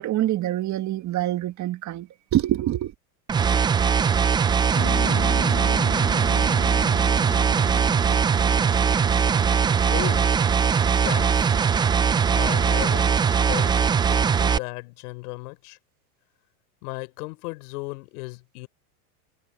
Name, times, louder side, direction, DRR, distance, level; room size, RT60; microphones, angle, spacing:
voice 1, 0.0-2.9, right 13 dB, 35° right, 1.9 m, -25 dB
sound 1, 3.3-14.6, right 6 dB, 10° right, 0.3 m, -21 dB
Piano, 4.7-9.8, left 12 dB, 35° left, 2.6 m, -37 dB
voice 2, 9.9-10.4 11.0-11.6 12.3-13.1 13.4-13.8 14.1-15.8 16.8-18.7, left 24 dB, 70° left, 4.0 m, -35 dB
supercardioid pair, 120°, 47 cm